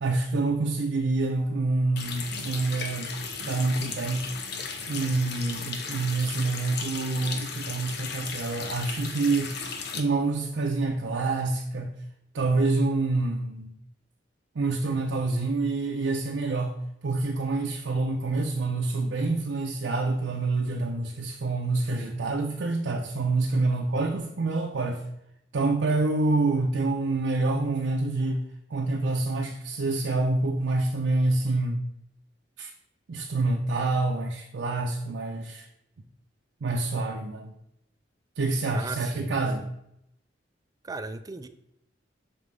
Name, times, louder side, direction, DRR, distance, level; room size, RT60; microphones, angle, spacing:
voice 1, 0.0-3.1 3.4-4.3 4.9-9.5 9.9-11.9 12.3-13.7 14.6-16.7 17.0-25.0 25.5-28.4 28.7-31.9 32.6-32.7 33.1-35.7 36.6-37.5 38.4-39.7, right 3 dB, 75° right, 0.6 m, -27 dB
Water tap faucet, 2.0-10.0, left 5 dB, 65° left, 0.7 m, -36 dB
voice 2, 38.6-39.4 40.8-41.5, right 3 dB, 20° right, 0.3 m, -37 dB
5.9 x 3.2 x 5.1 m
head